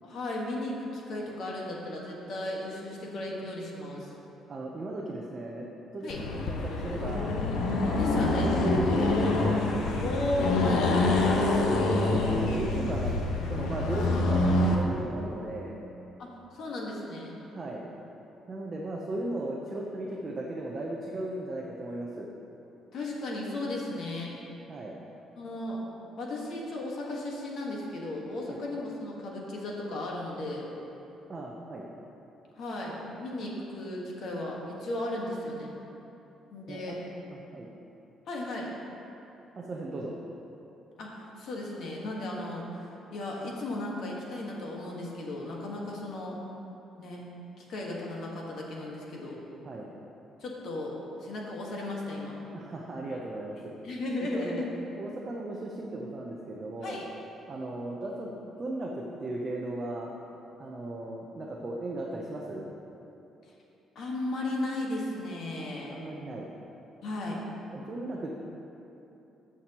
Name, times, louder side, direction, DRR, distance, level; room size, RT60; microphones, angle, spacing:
voice 1, 0.0-4.1 6.0-6.2 8.0-8.5 10.0-11.4 16.2-17.4 22.9-24.3 25.3-25.8 26.2-30.7 32.6-35.7 36.5-37.0 38.3-38.7 41.0-46.4 47.0-47.2 47.6-49.4 50.4-50.9 51.2-52.3 53.8-54.7 56.8-57.0 63.9-66.0 67.0-67.4, left 1 dB, 50° left, -2 dB, 1.4 m, -35 dB
voice 2, 4.5-5.7 5.9-7.4 7.8-9.6 10.2-11.1 11.6-15.8 17.4-17.8 18.5-22.3 24.7-25.0 28.5-28.6 31.3-31.9 36.7-37.0 37.3-37.7 39.6-40.1 49.7-49.9 52.5-53.7 54.2-54.7 55.0-57.0 57.5-60.1 60.6-62.7 65.9-66.5 67.7-68.5, right 2 dB, 25° right, -2 dB, 0.6 m, -36 dB
Accelerating revving vroom, 6.1-14.8, left 2 dB, 80° left, 0.9 m, -26 dB
15.0 x 6.1 x 2.9 m, 3.0 s
cardioid pair, 180°, 0 cm